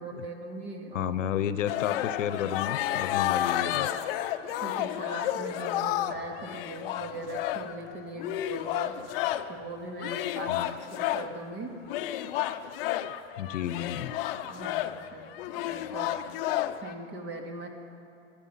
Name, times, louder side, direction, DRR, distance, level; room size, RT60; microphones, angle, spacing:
voice 1, 0.0-1.1 4.6-8.9 9.5-11.7 14.5-16.2 16.8-17.7, right 2 dB, 30° right, 2 dB, 2.2 m, -40 dB
voice 2, 0.9-3.9 10.5-10.7 13.4-14.2, left 10 dB, 85° left, 13 dB, 0.9 m, -32 dB
sound 1, 1.7-9.6 10.0-11.4 11.9-16.9, left 12 dB, 50° left, 0.7 m, -31 dB
23.5 x 10.5 x 5.7 m, 2.6 s
hypercardioid pair, 135°, 37 cm